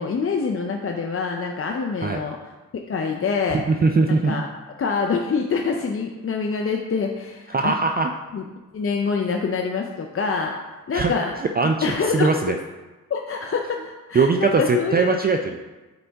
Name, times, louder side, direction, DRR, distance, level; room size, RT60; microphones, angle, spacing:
voice 1, 0.0-3.6 4.1-4.5 4.8-7.8 8.3-8.4 8.7-10.6 10.9-11.3 11.8-12.4 13.1-15.2, left 5 dB, 45° left, 2 dB, 0.5 m, -26 dB
voice 2, 3.7-4.4 7.5-8.1 10.9-11.1 11.6-11.8 12.1-12.6 14.1-15.6, right 4 dB, 30° right, 4 dB, 0.4 m, -20 dB
7.9 x 4.1 x 3.4 m, 1.2 s
wide cardioid pair, 95°, 32 cm